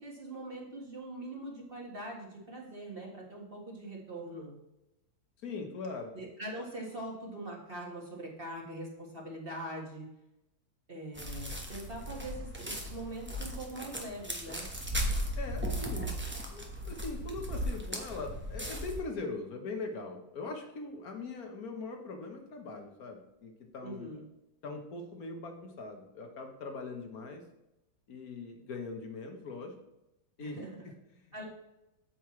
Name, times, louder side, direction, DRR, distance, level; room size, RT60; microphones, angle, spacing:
voice 1, 0.0-4.5 6.1-10.1 10.9-14.7 23.8-24.3 30.4-30.9 31.3-31.5, right 1 dB, 30° right, -2 dB, 1.7 m, -42 dB
voice 2, 5.4-6.1 15.4-16.1 16.5-24.1 24.6-27.4 28.1-29.7 30.4-30.6, left 3 dB, 55° left, 4 dB, 1.5 m, -41 dB
sound 1, 11.1-19.0, equal, 10° right, 0.8 m, -37 dB
8.5 x 7.8 x 3.2 m, 0.91 s
omnidirectional pair, 2.1 m